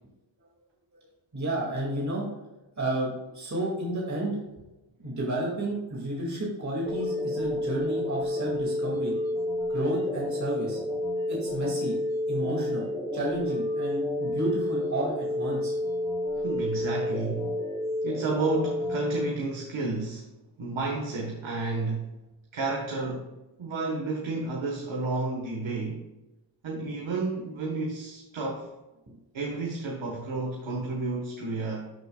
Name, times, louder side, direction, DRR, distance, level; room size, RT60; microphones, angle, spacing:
voice 1, 1.3-2.3 2.8-4.4 5.0-9.1 9.7-10.8 11.3-12.0 12.3-15.7, right 1 dB, 40° right, -4 dB, 2.3 m, -31 dB
sound 1, 6.9-19.3, left 1 dB, 10° left, 1.5 m, -30 dB
voice 2, 16.3-17.6 18.0-20.3 20.6-22.1 22.5-23.3 23.6-26.1 26.6-28.7 29.3-31.9, right 3 dB, 85° right, 0 dB, 1.5 m, -31 dB
12.0 x 6.8 x 2.3 m, 1.0 s
wide cardioid pair, 125°, 46 cm